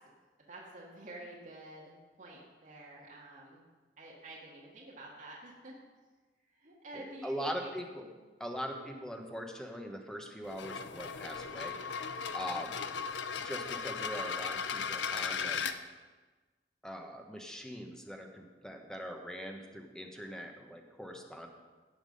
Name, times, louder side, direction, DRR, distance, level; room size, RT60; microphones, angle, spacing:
voice 1, 0.5-3.6 4.0-5.8 6.5-7.6 8.0-8.1 8.7-8.9, right 1 dB, 50° right, -4 dB, 2.0 m, -49 dB
voice 2, 6.9-8.0 8.4-11.8 12.3-12.8 13.4-15.6 16.8-21.5, equal, 5° left, 3 dB, 1.2 m, -41 dB
sound 1, 10.4-15.8, left 6 dB, 85° left, 0.6 m, -37 dB
16.5 x 5.8 x 5.4 m, 1.3 s
head